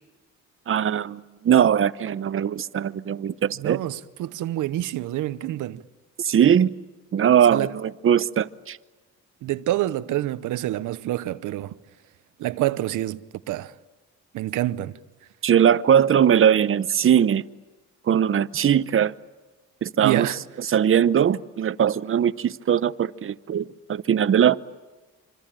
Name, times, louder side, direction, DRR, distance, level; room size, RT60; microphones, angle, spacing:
voice 1, 0.7-3.8 6.2-6.7 7.1-8.8 15.4-17.4 18.1-19.1 19.8-20.3 20.7-24.6, right 9 dB, 45° right, 0.9 m, -20 dB
voice 2, 3.6-5.8 7.5-7.7 9.4-11.7 12.4-13.7 14.3-15.0 20.0-20.4, right 14 dB, 85° right, 0.9 m, -27 dB
26.0 x 25.0 x 8.9 m
cardioid pair, 90°, 30 cm